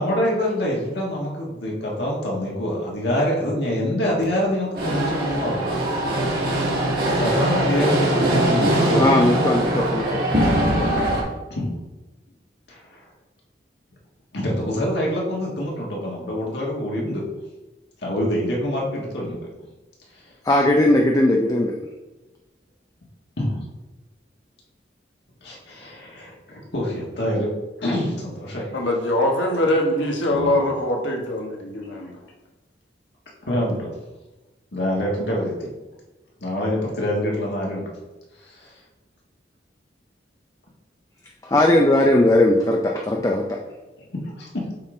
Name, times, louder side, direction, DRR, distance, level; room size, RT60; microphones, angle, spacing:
voice 1, 0.0-5.7 7.2-9.3 10.3-10.4 11.5-11.7 12.7-13.0 14.3-17.2 18.0-19.4 23.4-23.6 25.4-27.5 27.8-28.7 30.3-30.5 33.5-33.9 34.7-35.7 36.4-37.9 38.5-38.7 44.4-44.6, equal, 65° left, -3 dB, 1.6 m, -25 dB
sound 1, 4.7-11.2, right 1 dB, 50° right, 2.2 m, -21 dB
voice 2, 9.0-10.2 20.4-21.8 41.4-43.4, left 1 dB, 20° left, 1 dB, 0.4 m, -18 dB
voice 3, 28.7-32.1, left 1 dB, 85° left, 0 dB, 1.3 m, -22 dB
8.5 x 3.8 x 3.8 m, 1.1 s
head